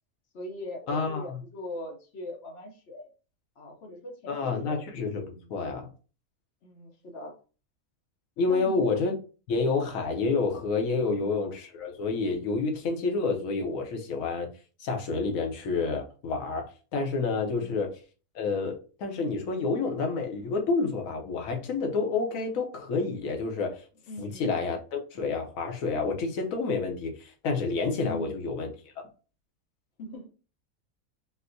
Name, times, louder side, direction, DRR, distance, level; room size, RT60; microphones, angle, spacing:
voice 1, 0.3-3.1 3.6-4.9 5.3-5.5 6.6-7.4 8.5-8.9 11.0-11.3 17.5-17.7 24.1-24.5 28.0-28.4 30.0-30.3, left 1 dB, 60° left, 0.8 m, -41 dB
voice 2, 0.9-1.3 4.3-5.2 5.5-5.9 8.4-9.1 9.5-14.5 14.8-17.9 18.3-23.8 24.2-28.7 29.0-29.1, left 4 dB, 75° left, 1.1 m, -29 dB
4.2 x 2.1 x 2.5 m
omnidirectional pair, 1.5 m